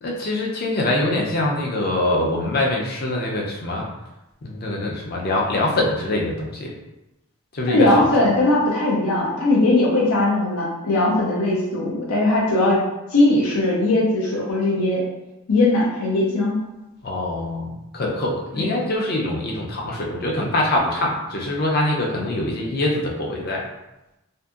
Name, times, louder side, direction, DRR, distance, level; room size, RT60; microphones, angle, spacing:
voice 1, 0.0-3.9 4.4-6.7 7.5-8.1 17.0-23.6, left 1 dB, 45° left, -1 dB, 0.5 m, -24 dB
voice 2, 7.7-12.8 13.1-15.0 15.5-16.6 18.5-18.7, left 2 dB, 90° left, -4 dB, 0.6 m, -19 dB
2.7 x 2.6 x 2.3 m, 0.96 s
head